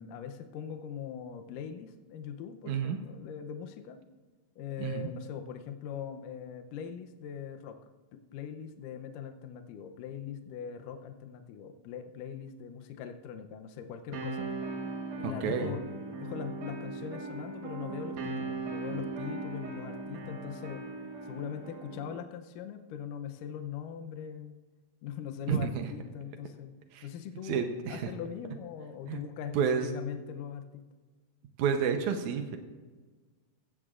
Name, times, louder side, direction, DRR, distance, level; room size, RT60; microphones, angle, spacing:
voice 1, 0.0-4.0 4.6-7.8 8.1-14.5 15.2-15.8 16.2-20.8 21.2-24.5 25.0-26.8 27.0-30.8, left 8 dB, 80° left, 7 dB, 1.9 m, -41 dB
voice 2, 2.7-3.0 4.8-5.1 15.2-15.7 25.5-25.9 26.9-27.1 27.4-28.1 29.1-29.2 29.5-29.9 31.6-32.6, right 7 dB, 85° right, 6 dB, 1.7 m, -30 dB
sound 1, 14.1-22.2, right 3 dB, 65° right, 2.3 m, -39 dB
15.5 x 15.0 x 2.5 m, 1.3 s
omnidirectional pair, 4.6 m